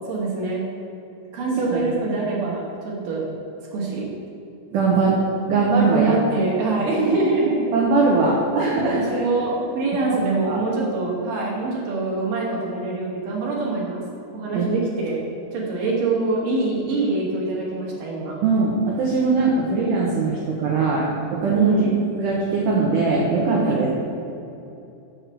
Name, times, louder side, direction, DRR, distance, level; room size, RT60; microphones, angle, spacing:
voice 1, 0.1-0.7 1.3-3.2 3.7-4.1 5.9-7.7 8.9-14.0 14.3-15.2 15.5-18.4 21.5-21.9 23.6-23.8, right 3 dB, 65° right, -3 dB, 2.4 m, -24 dB
voice 2, 4.7-5.2 5.5-6.1 7.7-9.2 10.1-10.6 14.5-14.7 18.4-21.8 22.2-23.9, right 4 dB, 90° right, -4 dB, 1.8 m, -21 dB
6.4 x 4.7 x 6.5 m, 2.8 s
omnidirectional pair, 5.0 m